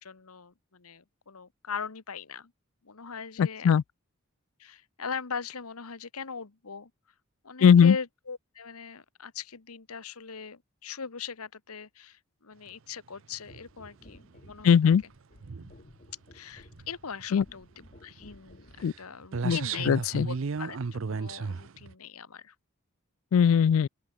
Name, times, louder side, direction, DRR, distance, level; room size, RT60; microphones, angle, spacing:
voice 1, 0.0-2.5 2.8-3.7 4.6-6.9 7.4-14.9 16.3-17.7 18.0-19.9 20.2-22.5, left 6 dB, 85° left, 1.2 m, -40 dB
voice 2, 3.4-3.8 7.6-8.0 14.6-15.0 17.3-17.4 18.8-18.9 19.4-19.6 19.9-20.3 23.3-23.9, left 7 dB, 65° left, 0.3 m, -20 dB
sound 1, 13.3-13.9 14.2-14.6 15.1-15.7 16.6-16.9 17.2-17.3 17.5-17.6 17.9-18.2 18.8-18.9 19.2-21.9, right 4 dB, 65° right, 0.6 m, -34 dB
sound 2, 13.5-19.1 19.9-20.1, left 1 dB, 35° left, 2.0 m, -55 dB
open air
head